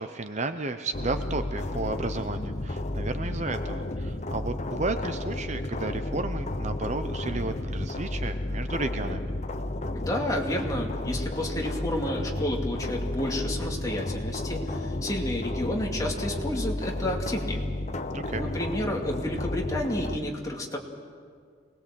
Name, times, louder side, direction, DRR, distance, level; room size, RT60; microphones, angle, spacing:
voice 1, 0.0-9.3 18.1-18.5, right 2 dB, 35° right, 9 dB, 0.8 m, -33 dB
sound 1, 0.9-20.2, left 1 dB, 35° left, 0.9 m, -32 dB
voice 2, 9.9-17.6 18.3-20.8, left 1 dB, 20° left, 0 dB, 2.4 m, -31 dB
25.5 x 20.0 x 7.7 m, 2.1 s
head